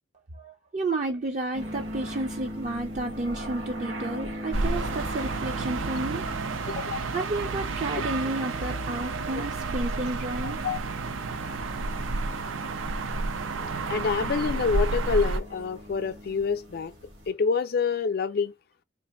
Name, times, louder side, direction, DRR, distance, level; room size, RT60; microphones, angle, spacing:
voice 1, 0.3-6.2 7.0-10.6, right 2 dB, 40° right, 0.5 m, -31 dB
sound 1, 1.5-17.3, equal, 70° right, 1.6 m, -40 dB
sound 2, 4.5-15.4, right 3 dB, 90° right, 0.6 m, -31 dB
voice 2, 6.7-7.1 9.3-9.4 10.4-10.8 13.9-16.9 17.3-18.5, left 5 dB, 55° left, 0.4 m, -27 dB
3.3 x 2.5 x 4.1 m
head